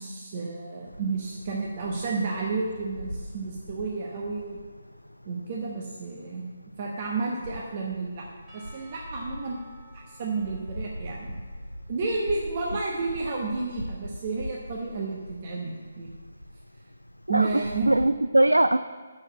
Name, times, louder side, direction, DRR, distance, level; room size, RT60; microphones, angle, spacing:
voice 1, 0.0-4.6 5.2-6.4 6.8-8.3 8.5-9.6 9.9-11.4 11.9-16.1 17.3-17.9, right 3 dB, 35° right, -2 dB, 1.0 m, -31 dB
sound 1, 0.8-18.1, equal, 90° left, 0.3 m, -42 dB
Percussion / Church bell, 8.5-12.8, right 2 dB, 15° right, 2.0 m, -56 dB
voice 2, 17.3-18.8, right 1 dB, 80° right, 11 dB, 0.3 m, -21 dB
6.8 x 6.5 x 7.1 m, 1.5 s
figure-of-eight pair, 145°, 0 cm